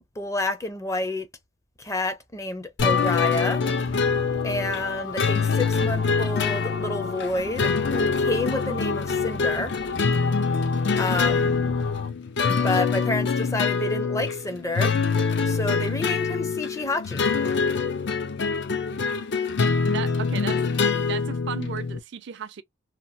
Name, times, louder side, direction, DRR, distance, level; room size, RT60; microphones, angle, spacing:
voice 1, 0.2-1.3 1.8-3.6 4.4-9.7 11.0-11.7 12.6-15.0 15.4-17.3, left 2 dB, 15° left, 0.5 m, -29 dB
sound 1, 2.8-12.1, left 3 dB, 85° left, 1.2 m, -35 dB
sound 2, 2.8-22.0, left 5 dB, 60° left, 0.5 m, -25 dB
voice 2, 19.9-20.6 21.1-22.6, right 7 dB, 60° right, 0.4 m, -34 dB
2.9 x 2.3 x 2.6 m
head